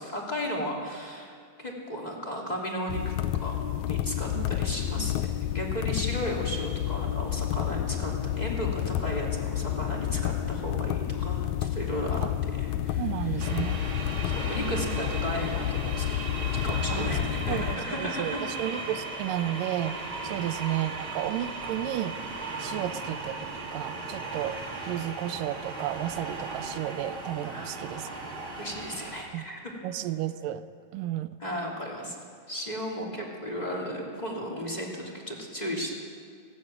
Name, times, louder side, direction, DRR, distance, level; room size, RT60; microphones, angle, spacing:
voice 1, 0.0-3.1 3.4-12.2 12.6-13.7 14.2-16.3 16.6-18.4 20.2-20.4 27.4-28.3 28.6-29.7 31.4-32.2 32.5-35.9, equal, 15° left, -2 dB, 2.7 m, -35 dB
sound 1, 2.9-17.8, left 12 dB, 80° left, 1.8 m, -30 dB
voice 2, 13.0-13.8 14.5-15.0 16.9-17.2 17.5-20.0 20.2-22.2 22.6-28.1 29.3-29.5 29.8-30.6 30.9-31.3, right 12 dB, 85° right, 12 dB, 2.3 m, -33 dB
sound 2, 13.4-29.2, right 3 dB, 40° right, 3.0 m, -37 dB
20.0 x 16.5 x 9.0 m, 2.2 s
omnidirectional pair, 3.8 m